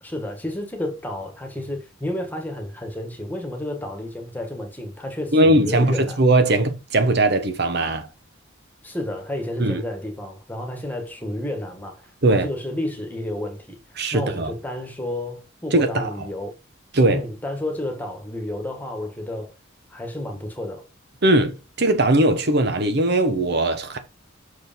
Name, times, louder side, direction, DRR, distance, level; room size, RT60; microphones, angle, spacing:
voice 1, 0.0-6.2 8.8-13.8 14.1-16.5 17.1-19.5 19.9-20.8, left 1 dB, 10° left, 1.6 m, -31 dB
voice 2, 5.3-8.1 9.6-9.8 12.2-12.5 14.0-14.5 15.7-16.3 16.9-17.2 21.2-24.0, right 1 dB, 55° right, 1.2 m, -19 dB
6.3 x 5.1 x 5.1 m
head